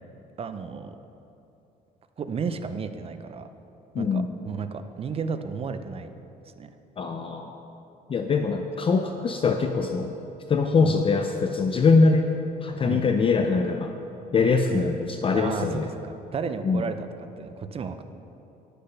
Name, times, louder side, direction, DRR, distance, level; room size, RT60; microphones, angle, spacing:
voice 1, 0.4-1.0 2.2-3.5 4.0-6.1 6.6-6.7 10.8-11.0 12.8-13.1 14.7-14.9 15.3-18.0, right 5 dB, 35° right, 9 dB, 0.6 m, -33 dB
voice 2, 3.9-4.3 7.0-7.6 8.1-10.1 10.5-12.3 12.6-13.9 14.3-15.9 16.6-16.8, left 4 dB, 30° left, 5 dB, 0.5 m, -23 dB
9.8 x 6.7 x 5.6 m, 2.9 s
cardioid pair, 110°, 17 cm